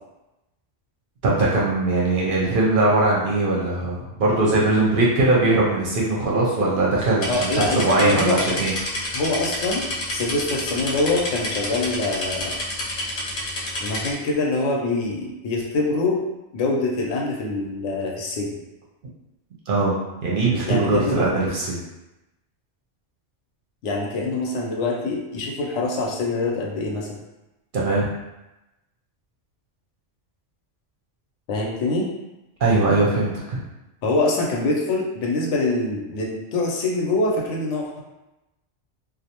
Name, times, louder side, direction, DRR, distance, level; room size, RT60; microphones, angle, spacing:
voice 1, 1.2-8.7 19.7-19.9 20.2-21.8 27.7-28.1 32.6-33.6, right 2 dB, 60° right, -5 dB, 0.6 m, -20 dB
sound 1, 7.2-14.1, left 1 dB, 55° left, 0.7 m, -29 dB
voice 2, 7.3-8.4 9.1-9.9 10.1-12.5 13.8-16.2 16.5-18.5 20.7-21.2 23.8-27.2 31.5-32.1 34.0-38.0, left 2 dB, 85° left, -1 dB, 0.9 m, -24 dB
2.5 x 2.0 x 2.8 m, 0.98 s
omnidirectional pair, 1.2 m